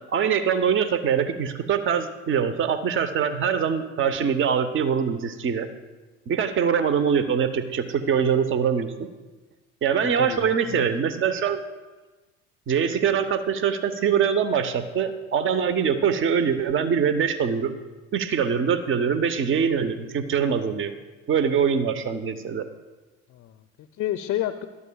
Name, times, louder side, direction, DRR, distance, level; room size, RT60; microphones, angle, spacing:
voice 1, 0.1-5.7 6.3-9.1 9.8-11.6 12.7-17.7 18.1-20.9 21.3-22.6, right 7 dB, 30° right, 11 dB, 0.9 m, -23 dB
voice 2, 10.0-10.9 23.3-24.7, left 12 dB, 40° left, 9 dB, 0.6 m, -31 dB
20.0 x 12.5 x 2.3 m, 1.2 s
figure-of-eight pair, 65°, 38 cm